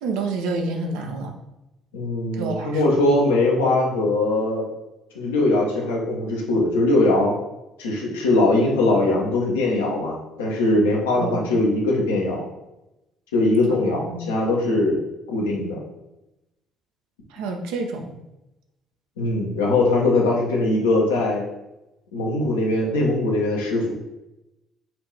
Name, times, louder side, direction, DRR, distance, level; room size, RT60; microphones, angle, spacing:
voice 1, 0.0-1.3 2.4-3.0 11.2-11.5 13.9-14.3 17.3-18.2, right 3 dB, 65° right, 3 dB, 0.5 m, -29 dB
voice 2, 1.9-4.7 5.1-7.3 7.8-12.4 13.3-15.0 15.3-15.8 19.2-21.4 22.1-23.9, left 2 dB, 70° left, -2 dB, 0.8 m, -21 dB
4.3 x 2.6 x 3.2 m, 0.94 s
figure-of-eight pair, 50°, 0 cm